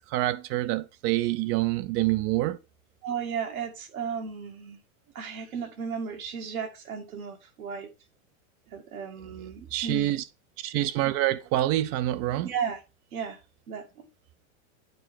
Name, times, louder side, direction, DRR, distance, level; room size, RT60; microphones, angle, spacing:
voice 1, 0.1-2.6 9.7-10.2 10.6-12.5, right 15 dB, 35° right, 0.5 m, -26 dB
voice 2, 3.0-4.8 5.1-7.9 8.7-10.1 12.4-12.8 13.1-13.4 13.7-14.1, right 6 dB, 85° right, 2.3 m, -34 dB
9.3 x 4.4 x 4.5 m
supercardioid pair, 130°, 42 cm